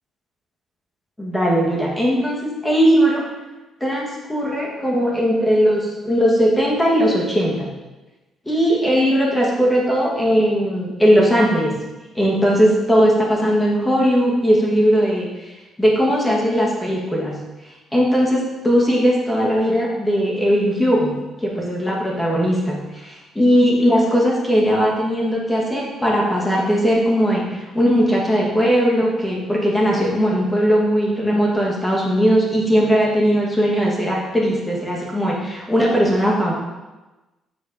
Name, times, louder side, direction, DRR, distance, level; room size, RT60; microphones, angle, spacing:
voice 1, 1.2-3.2 3.8-7.7 8.4-11.7 12.1-15.3 15.8-17.4 17.9-36.5, equal, 5° left, -4 dB, 1.5 m, -18 dB
7.1 x 4.3 x 5.3 m, 1.1 s
cardioid pair, 170°, 0 cm